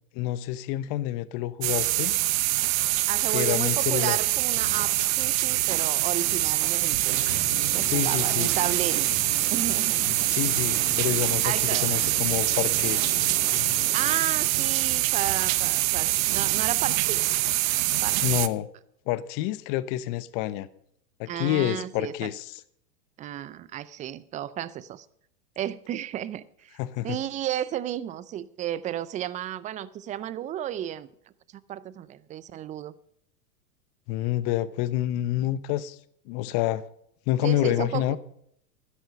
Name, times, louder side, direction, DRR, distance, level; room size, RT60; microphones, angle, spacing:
voice 1, 0.1-2.1 3.3-4.2 7.8-8.5 10.3-13.3 18.2-18.7 19.1-20.7 21.2-22.5 26.8-27.2 34.1-36.0 36.3-36.8 37.3-38.2, left 14 dB, 45° left, 1.0 m, -28 dB
sound 1, 1.6-18.5, right 17 dB, 55° right, 0.9 m, -24 dB
voice 2, 3.1-7.2 7.7-9.1 9.5-10.3 10.5-10.9 11.4-12.0 13.9-17.3 18.0-18.3 21.3-22.3 23.2-25.1 25.6-26.8 27.0-31.1 31.7-32.9 37.4-38.2, right 11 dB, 15° right, 0.4 m, -33 dB
sound 2, 7.1-14.2, left 8 dB, 85° left, 1.2 m, -40 dB
12.5 x 10.5 x 5.4 m
hypercardioid pair, 100°, 48 cm